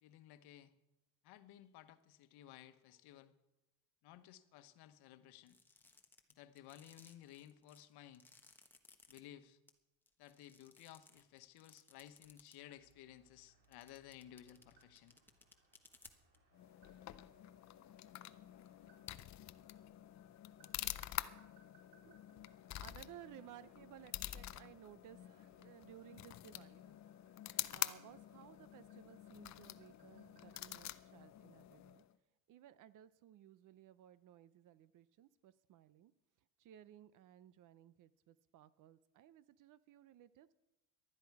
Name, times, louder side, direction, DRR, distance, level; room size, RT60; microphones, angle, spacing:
voice 1, 0.0-0.7 1.2-3.3 4.0-5.6 6.3-8.2 9.1-9.6 10.2-15.2, left 12 dB, 65° left, 10 dB, 1.2 m, -57 dB
sound 1, 5.5-9.2 9.7-9.8 10.1-12.6 12.9-13.0 13.6-16.4, left 2 dB, 5° left, 1.2 m, -62 dB
sound 2, 12.7-30.7, right 3 dB, 70° right, 4.8 m, -74 dB
sound 3, 16.5-32.1, left 13 dB, 40° left, 0.6 m, -47 dB
voice 2, 21.9-26.9 27.5-32.0 32.5-36.1 36.6-40.5, right 11 dB, 50° right, 16 dB, 0.7 m, -59 dB
19.0 x 12.5 x 4.7 m, 0.97 s
cardioid pair, 135°, 41 cm